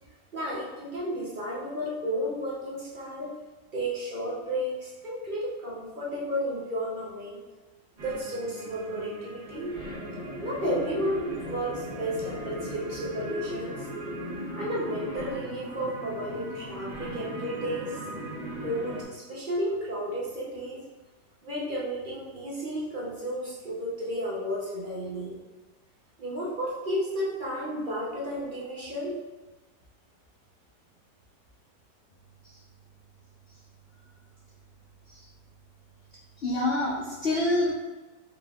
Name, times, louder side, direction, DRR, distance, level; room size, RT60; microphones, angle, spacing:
voice 1, 0.3-3.3 3.7-7.4 8.0-9.8 10.4-13.9 14.5-18.0 18.6-20.8 21.4-25.4 26.2-29.2, equal, 50° right, -5 dB, 0.6 m, -32 dB
sound 1, 8.0-19.0, right 1 dB, 25° right, 1.0 m, -38 dB
voice 2, 36.4-37.7, left 2 dB, 65° left, -6 dB, 0.6 m, -26 dB
4.9 x 3.5 x 2.3 m, 1.2 s
omnidirectional pair, 1.8 m